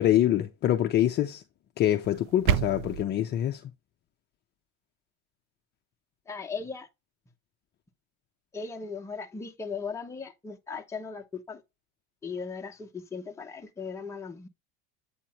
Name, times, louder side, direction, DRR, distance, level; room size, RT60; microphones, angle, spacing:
voice 1, 0.0-1.4 1.8-3.6, left 12 dB, 30° left, 0.6 m, -25 dB
sound 1, 2.0-3.0, right 11 dB, 55° right, 0.5 m, -28 dB
voice 2, 6.3-6.9 8.5-11.6 12.2-14.5, left 5 dB, 10° left, 0.9 m, -37 dB
8.7 x 3.1 x 4.2 m
supercardioid pair, 150°, 35 cm